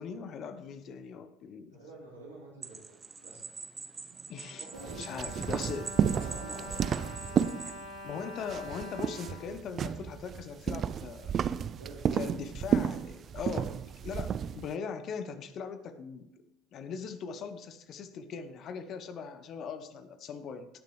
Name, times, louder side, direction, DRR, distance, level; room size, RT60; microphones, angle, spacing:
voice 1, 0.0-1.8 4.3-4.7 5.0-6.0 8.0-11.3 12.1-16.3 16.7-20.7, left 6 dB, 45° left, 11 dB, 0.8 m, -40 dB
voice 2, 1.7-3.4 4.6-5.4 6.1-7.5 11.8-12.2, right 2 dB, 85° right, -6 dB, 3.6 m, -49 dB
sound 1, 2.6-7.8, right 4 dB, 25° right, 0.9 m, -44 dB
Bowed string instrument, 4.1-10.4 11.1-11.2 11.4-11.6, left 1 dB, 55° right, 2.2 m, -46 dB
sound 2, 4.8-8.1 8.4-14.7, right 8 dB, 40° right, 0.3 m, -32 dB
18.5 x 6.7 x 3.3 m, 0.89 s
figure-of-eight pair, 65°, 0 cm